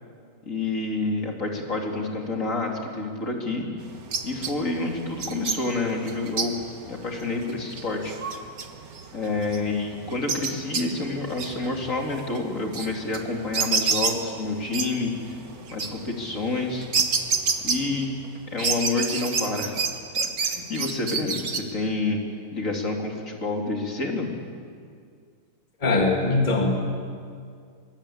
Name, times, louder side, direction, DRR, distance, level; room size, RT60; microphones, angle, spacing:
voice 1, 0.4-3.7 4.2-6.6 6.9-8.1 9.1-15.1 15.7-16.9 17.6-18.1 18.5-19.8 20.2-22.2 22.5-24.3, left 3 dB, 50° left, 1 dB, 3.1 m, -28 dB
sound 1, 3.8-18.3 18.6-21.6, right 5 dB, 65° right, 2.0 m, -30 dB
voice 2, 25.8-26.8, left 2 dB, 30° left, 1 dB, 2.4 m, -21 dB
22.5 x 22.0 x 8.6 m, 2.2 s
omnidirectional pair, 1.7 m